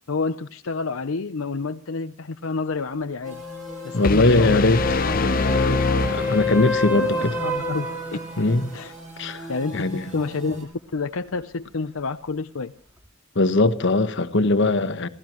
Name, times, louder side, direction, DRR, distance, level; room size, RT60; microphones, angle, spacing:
voice 1, 0.1-3.4 3.8-4.6 5.0-5.3 6.2-8.2 8.7-9.0 9.5-12.7, left 4 dB, 75° left, 0.7 m, -29 dB
sound 1, 3.2-8.9 13.0-13.1, left 3 dB, 10° right, 2.8 m, -30 dB
sound 2, 3.2-10.6, right 2 dB, 35° right, 7.2 m, -40 dB
voice 2, 3.9-4.8 5.1-7.3 8.4-8.7 9.2-9.5 9.7-10.0 13.3-15.1, left 2 dB, 60° left, 1.2 m, -21 dB
sound 3, 4.0-7.0, left 3 dB, 40° left, 0.8 m, -24 dB
27.0 x 16.0 x 3.0 m
head